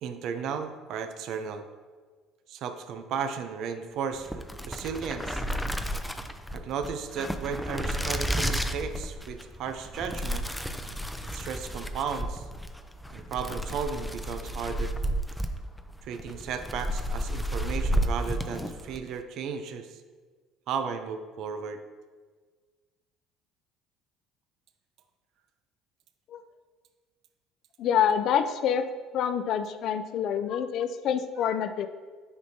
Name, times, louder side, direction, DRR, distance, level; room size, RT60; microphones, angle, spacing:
voice 1, 0.0-1.6 2.5-5.4 6.5-10.5 11.3-12.5 13.1-14.9 16.0-20.0 20.7-21.8, right 6 dB, 65° right, 8 dB, 0.6 m, -34 dB
sound 1, 4.2-19.1, equal, ahead, 0.5 m, -32 dB
voice 2, 27.8-28.8 29.1-31.9, left 8 dB, 60° left, 10 dB, 0.4 m, -26 dB
9.5 x 5.1 x 2.8 m, 1.5 s
supercardioid pair, 80°, 0 cm